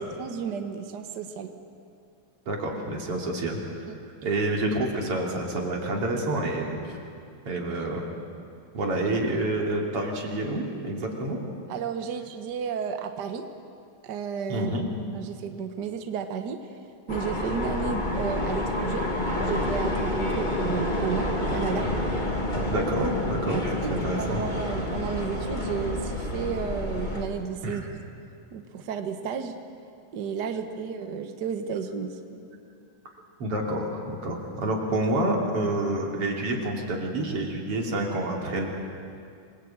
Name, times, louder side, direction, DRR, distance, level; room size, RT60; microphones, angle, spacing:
voice 1, 0.0-1.5 3.9-4.0 11.7-13.4 14.0-14.7 15.1-16.8 17.1-19.0 19.4-21.9 23.5-28.0 28.5-29.6 30.1-32.2, right 6 dB, 75° right, 7 dB, 0.9 m, -32 dB
voice 2, 2.5-3.6 4.2-7.0 7.5-8.0 8.7-11.4 14.5-14.9 22.7-23.6 23.9-24.4 27.6-27.9 33.4-38.7, right 1 dB, 45° right, 0 dB, 3.8 m, -28 dB
sound 1, 17.1-27.2, left 1 dB, 15° left, 1.9 m, -29 dB
26.5 x 20.5 x 8.8 m, 2.4 s
omnidirectional pair, 3.8 m